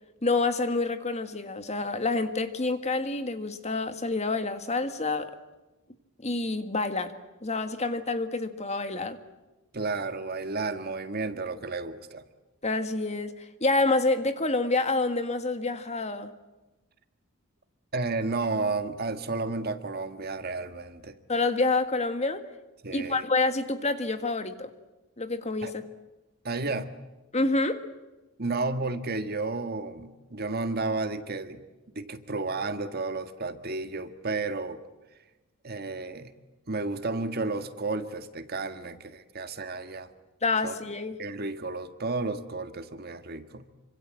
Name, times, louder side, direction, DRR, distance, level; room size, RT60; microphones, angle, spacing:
voice 1, 0.2-5.3 6.2-7.1 7.4-9.2 12.6-16.3 21.3-22.4 22.9-24.7 25.2-25.8 27.3-27.8 40.4-41.2, left 3 dB, 30° left, 9 dB, 1.7 m, -27 dB
voice 2, 9.7-12.2 17.9-21.1 22.8-23.3 25.6-25.7 26.4-26.9 28.4-31.6 31.9-34.8 35.6-36.3 36.7-40.1 40.6-40.7 41.2-43.7, right 3 dB, 45° right, 10 dB, 1.7 m, -32 dB
26.5 x 25.5 x 7.7 m, 1.1 s
head